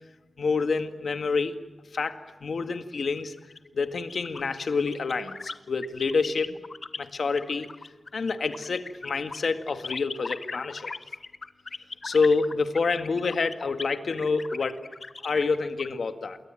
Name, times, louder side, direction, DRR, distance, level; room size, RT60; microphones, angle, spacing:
voice 1, 0.4-1.6 1.9-3.3 3.7-6.6 7.0-7.7 8.1-10.9 12.0-14.8 15.2-16.4, left 4 dB, 80° left, 8 dB, 1.9 m, -27 dB
sound 1, 3.1-7.0 7.3-15.9, left 3 dB, 55° left, 1.2 m, -39 dB
28.5 x 21.5 x 9.1 m, 1.2 s
wide cardioid pair, 85°, 0 cm